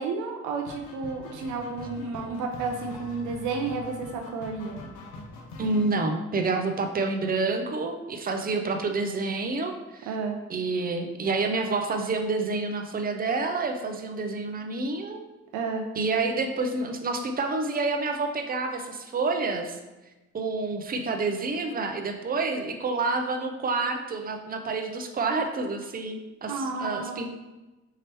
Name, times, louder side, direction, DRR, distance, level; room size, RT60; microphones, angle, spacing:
voice 1, 0.0-4.8 10.1-10.4 15.5-15.8 26.5-27.3, right 4 dB, 85° right, 3 dB, 0.5 m, -31 dB
sound 1, 0.6-5.9, left 3 dB, 80° left, 0.7 m, -43 dB
voice 2, 5.6-10.1 10.5-15.2 15.9-19.8 20.3-27.3, right 3 dB, 30° right, 5 dB, 0.5 m, -28 dB
4.7 x 3.0 x 3.0 m, 1.1 s
cardioid pair, 90°, 30 cm